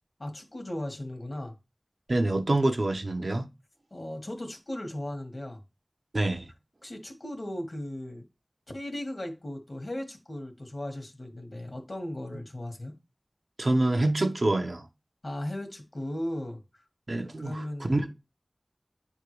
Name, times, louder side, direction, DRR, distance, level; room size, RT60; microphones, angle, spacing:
voice 1, 0.2-1.5 3.9-5.6 6.8-8.3 8.7-12.9 15.2-16.6 17.4-18.1, left 1 dB, 65° left, 1.5 m, -37 dB
voice 2, 2.1-3.5 6.1-6.5 13.6-14.9 17.1-18.1, right 2 dB, 75° right, 0.7 m, -26 dB
9.2 x 3.6 x 3.1 m
wide cardioid pair, 40°, 0 cm